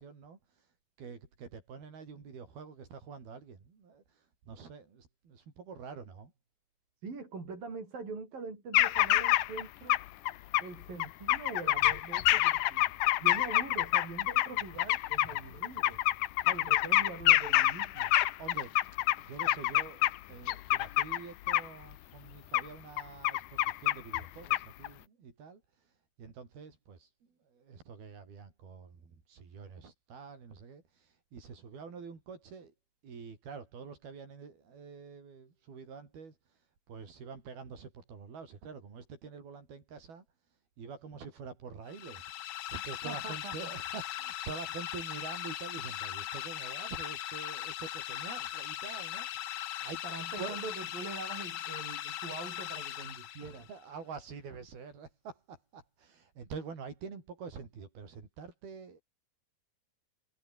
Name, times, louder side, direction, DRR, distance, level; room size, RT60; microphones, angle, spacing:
voice 1, 0.0-6.3 18.4-18.8 19.2-27.1 27.4-32.7 33.0-50.0 50.4-50.6 53.4-59.0, right 5 dB, 90° right, 7.1 m, -47 dB
voice 2, 7.0-10.0 10.6-12.9 13.2-16.0 16.5-18.1 43.1-43.7 50.0-53.7, right 4 dB, 70° right, 8.5 m, -43 dB
sound 1, 8.7-9.6 9.9-10.6 11.0-20.2 20.5-21.2 21.5-21.7 22.5-22.6 23.0-24.3 24.5-24.9, left 15 dB, 70° left, 2.1 m, -26 dB
sound 2, 41.9-53.8, left 13 dB, 90° left, 3.3 m, -39 dB
omnidirectional pair, 4.2 m